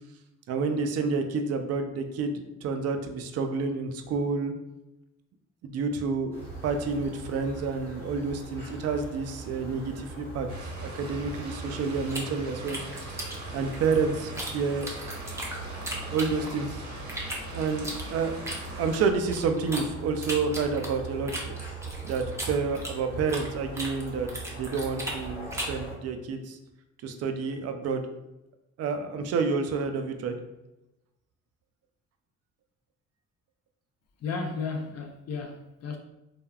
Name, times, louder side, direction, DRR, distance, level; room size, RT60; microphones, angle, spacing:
voice 1, 0.5-4.5 5.6-6.4 6.6-10.5 10.8-12.8 13.5-14.9 16.1-16.7 17.5-18.4 18.8-21.6 22.0-26.6 27.0-28.1 28.8-30.3, right 4 dB, 55° right, 0.4 m, -29 dB
sound 1, 6.3-26.0, right 2 dB, 5° left, 1.1 m, -41 dB
sound 2, 10.5-19.1, right 2 dB, 75° right, 0.9 m, -42 dB
sound 3, 12.1-14.5 14.8-16.7 17.1-19.8 20.2-23.5 23.7-25.8, right 1 dB, 10° right, 0.6 m, -37 dB
voice 2, 34.2-36.0, left 4 dB, 55° left, 0.4 m, -34 dB
3.3 x 2.2 x 2.3 m
cardioid pair, 90°, 30 cm